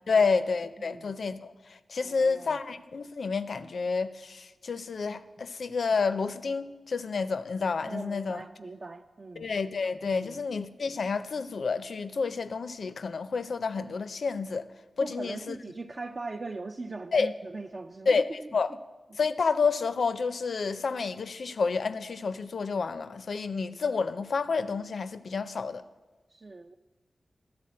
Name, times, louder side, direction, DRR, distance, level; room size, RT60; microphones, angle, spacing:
voice 1, 0.1-8.4 9.4-14.7 15.0-15.5 17.1-17.3 18.1-18.2 18.5-18.7 19.2-25.8, left 4 dB, 75° left, 0.4 m, -29 dB
voice 2, 0.8-1.1 2.0-2.6 7.8-9.5 10.1-10.4 15.0-18.5 26.3-26.7, right 3 dB, 45° right, 0.4 m, -40 dB
12.0 x 4.1 x 7.5 m
cardioid pair, 60°, 0 cm